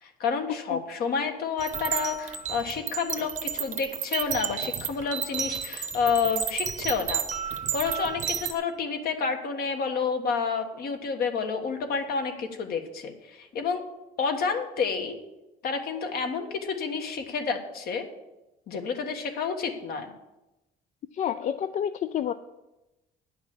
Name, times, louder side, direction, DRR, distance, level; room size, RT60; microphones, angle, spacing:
voice 1, 0.0-7.2 7.7-13.8 14.2-15.1 15.6-18.0 18.7-20.1, left 5 dB, 65° left, 5 dB, 1.5 m, -29 dB
sound 1, 1.6-8.5, right 8 dB, 45° right, 0.8 m, -32 dB
voice 2, 21.1-22.3, left 9 dB, 45° left, 11 dB, 0.4 m, -29 dB
9.7 x 5.9 x 7.2 m, 0.98 s
cardioid pair, 110°, 17 cm